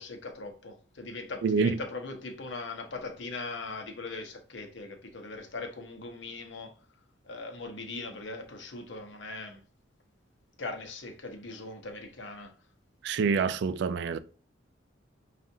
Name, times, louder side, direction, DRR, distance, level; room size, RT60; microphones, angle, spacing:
voice 1, 0.0-6.7 7.2-9.6 10.6-12.5, left 3 dB, 65° left, 0.8 m, -40 dB
voice 2, 1.4-1.8 13.0-14.2, right 5 dB, 65° right, 0.3 m, -26 dB
5.4 x 2.4 x 2.6 m
head